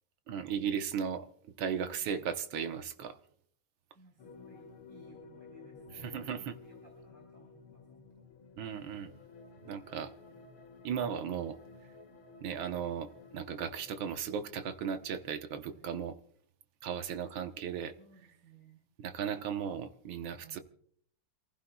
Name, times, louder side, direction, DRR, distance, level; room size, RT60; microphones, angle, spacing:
voice 1, 0.3-3.2 6.0-6.5 8.6-9.1 9.6-10.1 10.8-11.6 12.4-16.1 16.8-17.9 19.0-20.6, right 7 dB, 70° right, 1.7 m, -36 dB
voice 2, 3.9-8.2 10.0-10.5 15.7-15.9 18.0-18.8 20.3-20.6, right 3 dB, 50° right, 4.9 m, -60 dB
sound 1, 4.2-15.4, left 4 dB, 90° left, 2.0 m, -54 dB
28.0 x 15.5 x 2.3 m
omnidirectional pair, 2.3 m